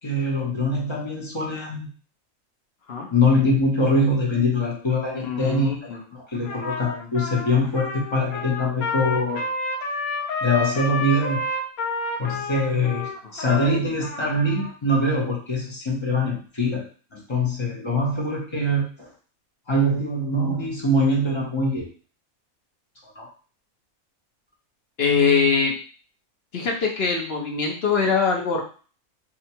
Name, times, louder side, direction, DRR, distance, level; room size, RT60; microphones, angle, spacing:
voice 1, 0.0-1.9 3.1-9.4 10.4-11.4 12.2-19.1 19.7-21.9 23.2-23.3, left 1 dB, 25° left, -2 dB, 0.8 m, -23 dB
voice 2, 5.1-6.0 13.5-13.6 25.0-25.7 26.5-28.6, left 5 dB, 50° left, 0 dB, 0.9 m, -23 dB
Trumpet, 6.4-14.7, left 2 dB, 85° left, 1.1 m, -30 dB
2.8 x 2.4 x 4.2 m, 0.39 s
omnidirectional pair, 1.5 m